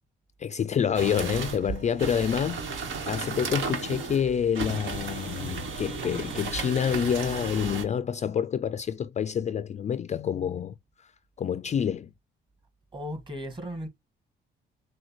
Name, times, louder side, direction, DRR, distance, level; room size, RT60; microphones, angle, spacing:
voice 1, 0.4-10.7 11.0-11.1 11.4-12.1, left 8 dB, 35° left, 0.4 m, -28 dB
sound 1, 0.9-7.8, right 4 dB, 75° right, 1.3 m, -34 dB
voice 2, 6.0-6.3 12.9-13.9, equal, 25° right, 1.7 m, -37 dB
6.3 x 2.2 x 3.0 m
cardioid pair, 90°, 20 cm